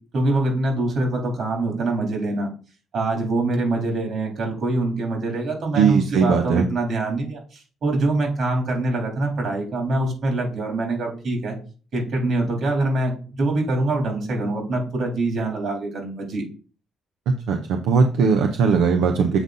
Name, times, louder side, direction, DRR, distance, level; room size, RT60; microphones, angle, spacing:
voice 1, 0.1-2.5 2.9-11.6 11.9-16.4, right 2 dB, 65° right, 1 dB, 3.3 m, -24 dB
voice 2, 5.7-6.7 17.3-19.4, right 5 dB, 90° right, 4 dB, 0.7 m, -19 dB
7.9 x 3.9 x 3.9 m, 0.37 s
cardioid pair, 90°, 0 cm